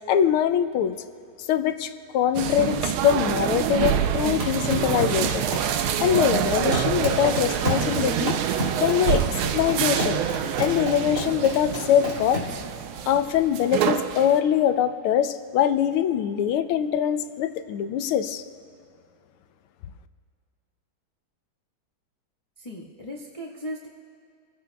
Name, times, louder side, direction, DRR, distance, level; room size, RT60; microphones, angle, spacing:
voice 1, 0.1-1.0 1.5-5.5 6.0-8.4 8.8-9.2 9.5-10.2 10.6-12.6 13.1-18.4, left 9 dB, 85° left, 10 dB, 1.6 m, -23 dB
sound 1, 2.3-14.4, right 9 dB, 80° right, 1.5 m, -26 dB
sound 2, 4.2-12.6, right 1 dB, 50° right, 3.1 m, -31 dB
voice 2, 22.6-23.9, equal, 20° left, -5 dB, 1.2 m, -37 dB
28.0 x 16.0 x 2.3 m, 2.4 s
omnidirectional pair, 2.4 m